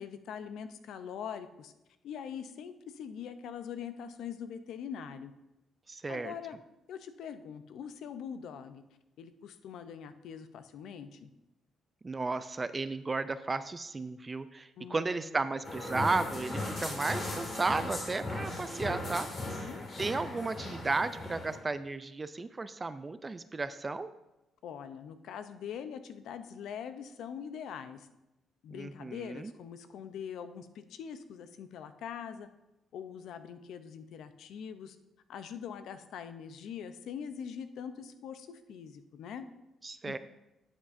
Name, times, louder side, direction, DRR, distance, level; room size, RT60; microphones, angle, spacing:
voice 1, 0.0-1.7 2.0-5.3 6.1-6.6 6.9-8.8 9.2-11.3 14.8-15.4 19.3-19.9 24.6-28.1 28.6-32.5 32.9-35.0 35.3-39.5 40.0-40.2, left 7 dB, 80° left, 10 dB, 0.5 m, -43 dB
voice 2, 5.9-6.3 12.0-19.3 20.0-24.1 28.7-29.5 39.8-40.2, right 3 dB, 25° right, 13 dB, 0.3 m, -34 dB
sound 1, 15.6-21.6, left 2 dB, 45° left, 2.4 m, -38 dB
11.0 x 7.2 x 2.6 m, 0.95 s
cardioid pair, 90°, 0 cm